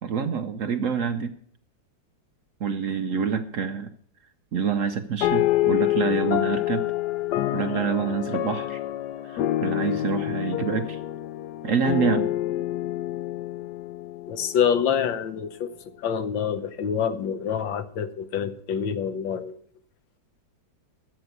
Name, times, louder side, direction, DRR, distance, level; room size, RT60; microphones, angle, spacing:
voice 1, 0.0-1.3 2.6-3.9 4.5-6.9 7.5-8.8 9.2-11.0 11.6-12.3, right 6 dB, 60° right, 8 dB, 0.9 m, -27 dB
sound 1, 5.2-15.0, left 14 dB, 70° left, 1.2 m, -27 dB
voice 2, 14.3-19.6, left 8 dB, 90° left, 10 dB, 1.7 m, -26 dB
12.0 x 8.0 x 5.9 m, 0.62 s
omnidirectional pair, 2.0 m